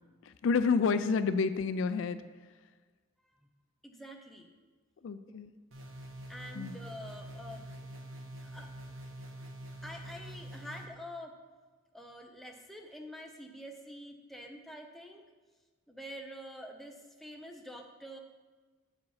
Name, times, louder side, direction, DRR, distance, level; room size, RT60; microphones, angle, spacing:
voice 1, 0.3-2.2 5.0-5.5 6.6-6.7, left 5 dB, 70° left, 12 dB, 0.4 m, -29 dB
voice 2, 3.8-4.5 5.3-5.4 6.3-7.7 8.4-8.7 9.8-11.4 11.9-15.2 15.9-18.2, equal, ahead, 2 dB, 0.6 m, -47 dB
sound 1, 5.7-10.9, right 1 dB, 80° right, 1.1 m, -46 dB
7.4 x 4.9 x 5.7 m, 1.3 s
head